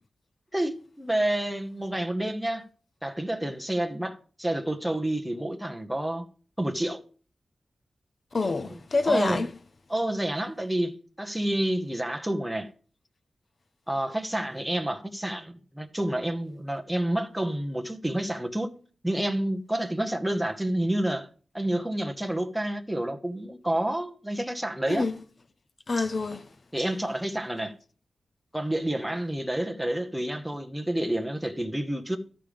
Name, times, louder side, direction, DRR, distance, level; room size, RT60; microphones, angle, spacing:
voice 1, 0.5-2.7 3.0-6.3 6.6-7.0 9.1-9.4 9.9-12.7 13.9-18.7 19.0-21.3 21.5-25.0 26.0-26.1 26.7-27.8 28.5-32.2, right 1 dB, 5° right, 0.9 m, -29 dB
voice 2, 8.3-9.5 24.9-25.2 25.9-26.5 26.8-26.9, left 3 dB, 40° left, 0.6 m, -27 dB
13.0 x 5.0 x 5.1 m
wide cardioid pair, 135°, 0 cm